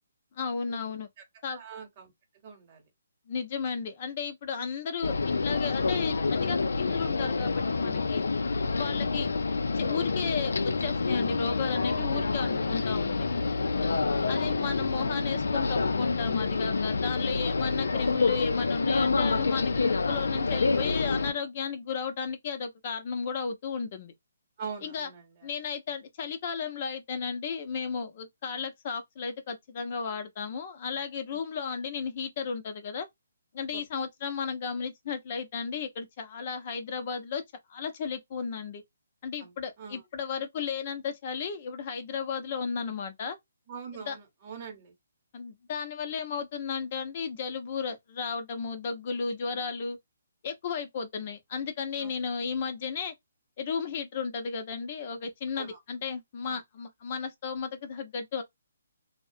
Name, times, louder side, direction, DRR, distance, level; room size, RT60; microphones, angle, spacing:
voice 1, 0.3-1.1 1.4-1.6 3.3-8.2 8.8-9.3 9.8-13.4 14.3-24.1 24.8-25.1 25.4-33.1 33.5-37.4 37.7-38.8 39.2-43.4 44.1-44.2 45.3-50.0 50.4-53.1 53.6-58.4, left 5 dB, 35° left, 0.6 m, -34 dB
voice 2, 1.5-2.1 2.4-2.9 13.7-14.3 24.6-25.5 31.3-31.4 33.7-33.8 39.4-40.0 43.7-44.9 52.0-52.1 55.5-55.8 56.4-56.6, right 6 dB, 30° right, 0.9 m, -44 dB
sound 1, 5.0-21.3, left 4 dB, 85° left, 0.4 m, -28 dB
2.3 x 2.1 x 2.6 m
hypercardioid pair, 165°, 0 cm